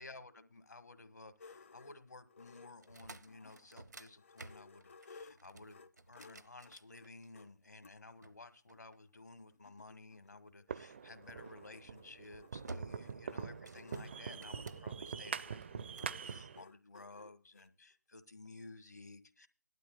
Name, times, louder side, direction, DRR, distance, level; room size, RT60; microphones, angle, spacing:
voice 1, 0.0-19.5, left 3 dB, 70° left, 10 dB, 1.7 m, -55 dB
sound 1, 1.4-3.7 4.1-7.9 8.7-8.8 9.1-9.2 9.4-17.7, left 4 dB, 45° left, 0.7 m, -59 dB
sound 2, 2.8-7.5 8.2-9.5 11.3-11.6 12.1-12.3 12.7-13.2 13.5-15.1 15.6-16.2, right 2 dB, 75° right, 0.8 m, -53 dB
sound 3, 10.7-16.6, right 6 dB, 40° right, 0.5 m, -44 dB
18.5 x 12.0 x 2.3 m, 0.35 s
figure-of-eight pair, 145°, 10 cm